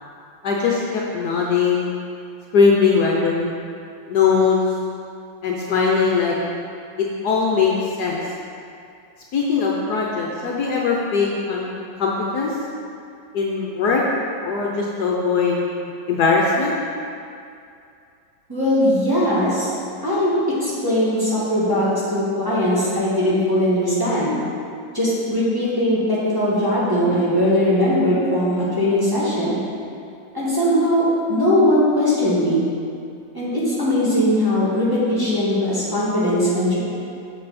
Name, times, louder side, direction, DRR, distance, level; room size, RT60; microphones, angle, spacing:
voice 1, 0.4-1.9 2.5-3.5 4.1-4.6 5.4-6.4 7.0-8.2 9.3-11.7 12.0-12.5 13.3-14.0 14.4-15.6 16.1-16.7, left 5 dB, 65° left, -2 dB, 1.2 m, -20 dB
voice 2, 18.5-19.7 20.0-20.4 20.6-24.3 24.9-29.6 30.3-32.7 33.3-36.8, left 1 dB, 10° right, -11 dB, 2.0 m, -20 dB
7.6 x 6.9 x 4.2 m, 2.5 s
omnidirectional pair, 2.0 m